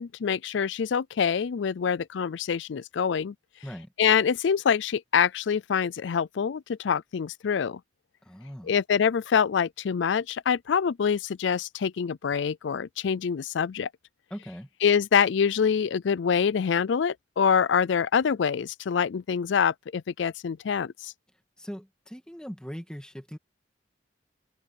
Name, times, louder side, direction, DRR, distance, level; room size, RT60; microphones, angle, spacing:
voice 1, 0.0-3.3 4.0-7.8 8.7-13.9 14.8-21.1, left 7 dB, 75° left, 0.4 m, -25 dB
voice 2, 8.2-8.7 14.3-14.7 21.6-23.4, equal, 5° left, 2.3 m, -40 dB
head